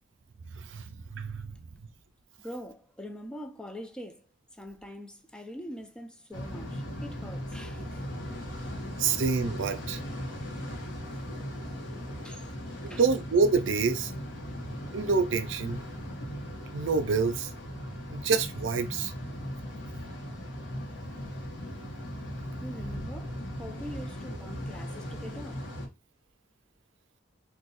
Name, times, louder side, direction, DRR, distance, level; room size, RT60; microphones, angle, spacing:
voice 1, 1.1-1.5 9.0-10.0 12.8-14.1 14.9-15.8 16.7-17.5 18.1-19.1, right 5 dB, 75° right, 0.5 m, -27 dB
voice 2, 2.4-4.3 4.6-8.0 11.1-11.3 11.8-11.9 12.2-12.5 12.9-13.0 19.7-20.2 22.6-25.6, equal, 5° left, 0.3 m, -44 dB
sound 1, 6.3-25.9, equal, 70° left, 1.1 m, -38 dB
2.6 x 2.4 x 4.0 m
head